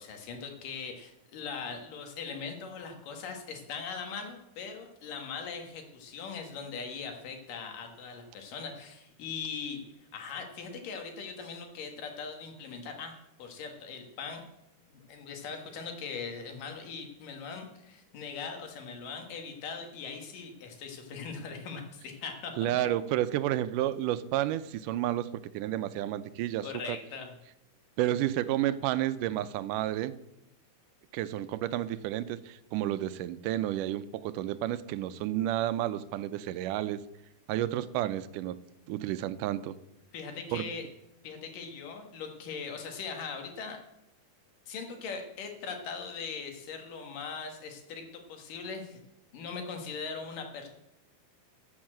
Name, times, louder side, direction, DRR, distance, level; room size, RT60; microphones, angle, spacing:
voice 1, 0.0-14.4 14.9-22.9 26.6-27.3 40.1-40.9 41.2-43.8 44.7-49.0 49.3-50.7, left 5 dB, 90° left, 4 dB, 3.5 m, -40 dB
voice 2, 22.6-27.0 28.0-30.2 31.1-37.0 37.5-38.6 38.9-39.8 40.5-40.7, right 13 dB, 85° right, 15 dB, 2.2 m, -31 dB
13.5 x 7.3 x 7.5 m, 0.87 s
omnidirectional pair, 3.7 m